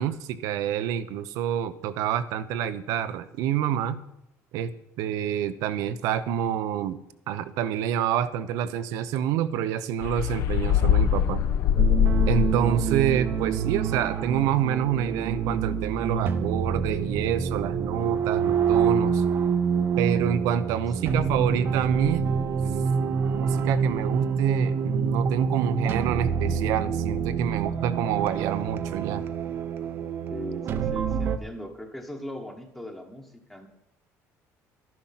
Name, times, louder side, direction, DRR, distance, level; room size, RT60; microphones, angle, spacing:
voice 1, 0.0-4.0 4.5-4.7 5.0-7.0 7.3-11.4 12.3-19.2 20.0-22.4 23.3-29.2, right 9 dB, 85° right, 12 dB, 0.9 m, -27 dB
sound 1, 10.0-12.8, left 9 dB, 60° left, 0.8 m, -22 dB
sound 2, 11.8-31.4, right 6 dB, 40° right, 0.7 m, -27 dB
voice 2, 20.5-21.3 30.3-33.7, equal, 5° left, 3 dB, 1.2 m, -40 dB
12.5 x 11.0 x 5.8 m, 0.83 s
cardioid pair, 175°, 6 cm